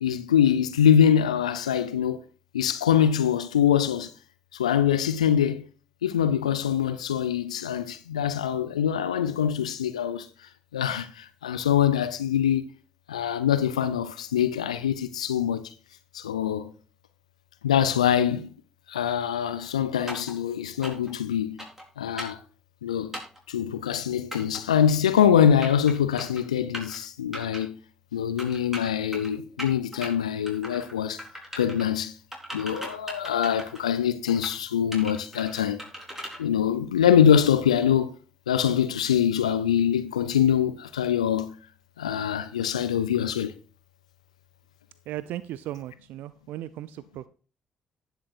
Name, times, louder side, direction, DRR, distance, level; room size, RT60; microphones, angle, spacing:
voice 1, 0.0-2.2 2.5-4.1 4.5-5.7 6.0-10.3 10.7-12.7 13.1-15.7 16.1-16.7 17.6-18.5 18.9-21.6 22.0-22.4 22.8-23.2 23.5-27.8 28.1-31.2 31.6-32.1 32.5-35.8 36.4-38.2 38.5-41.5 42.0-43.5, left 9 dB, 85° left, 0.4 m, -24 dB
sound 1, 20.1-20.3 20.8-21.1 21.6-21.8 22.2-22.4 23.1-23.4 24.3-24.6 25.4-25.9 26.2-26.4 26.7-27.0 27.3-27.6 28.4-29.3 29.6-30.1 30.5-30.9 31.2-31.8 32.3-33.9 34.3-34.5 34.9-36.4, equal, 10° right, 4.2 m, -38 dB
voice 2, 45.1-47.3, right 13 dB, 65° right, 0.4 m, -36 dB
18.0 x 6.8 x 2.5 m
figure-of-eight pair, 40°, 3 cm